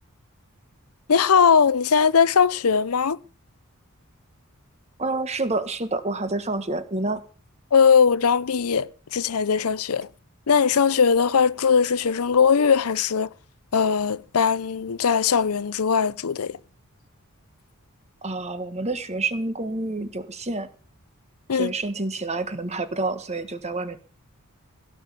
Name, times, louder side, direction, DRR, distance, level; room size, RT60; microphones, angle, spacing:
voice 1, 1.1-3.2 7.7-10.1 10.5-13.3 13.7-16.6 21.5-21.7, left 6 dB, 80° left, 0.6 m, -20 dB
voice 2, 5.0-7.2 18.2-20.7 21.5-24.0, right 2 dB, 30° right, 1.4 m, -28 dB
17.0 x 6.2 x 8.3 m
head